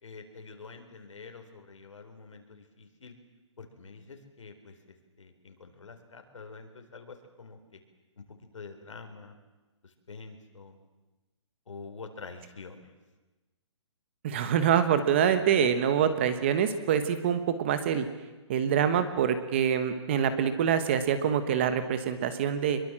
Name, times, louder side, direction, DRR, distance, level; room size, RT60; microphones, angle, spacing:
voice 1, 0.0-3.1 3.6-4.8 5.2-7.8 8.2-9.4 9.8-10.8 11.7-12.9, left 4 dB, 80° left, 6 dB, 4.3 m, -47 dB
voice 2, 14.2-18.1 18.5-22.8, right 8 dB, 25° right, 11 dB, 1.2 m, -25 dB
24.5 x 22.0 x 7.6 m, 1.2 s
hypercardioid pair, 175°, 16 cm